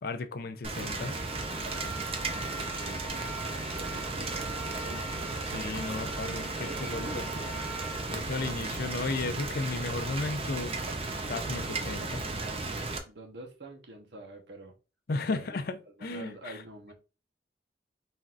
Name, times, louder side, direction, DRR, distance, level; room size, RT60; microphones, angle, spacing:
voice 1, 0.0-1.1 5.5-7.3 8.1-10.8 11.1-12.3 15.1-16.6, left 3 dB, 60° left, 0.5 m, -34 dB
Rain, 0.6-13.0, right 3 dB, 35° right, 0.6 m, -35 dB
sound 1, 0.9-9.1, right 2 dB, 10° right, 1.7 m, -43 dB
voice 2, 2.8-5.3 6.4-7.6 13.1-14.7 15.3-16.9, right 2 dB, 80° right, 1.0 m, -47 dB
4.2 x 3.8 x 2.4 m
head